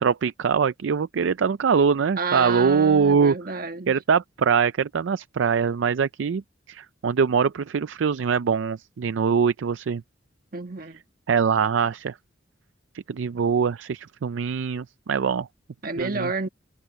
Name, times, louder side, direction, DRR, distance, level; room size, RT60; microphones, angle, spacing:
voice 1, 0.0-3.4 3.9-6.4 6.7-10.0 11.3-12.1 13.1-15.5 16.0-16.3, right 6 dB, 80° right, 0.4 m, -23 dB
voice 2, 2.2-3.9 10.5-11.0 15.8-16.5, right 4 dB, 50° right, 1.5 m, -30 dB
head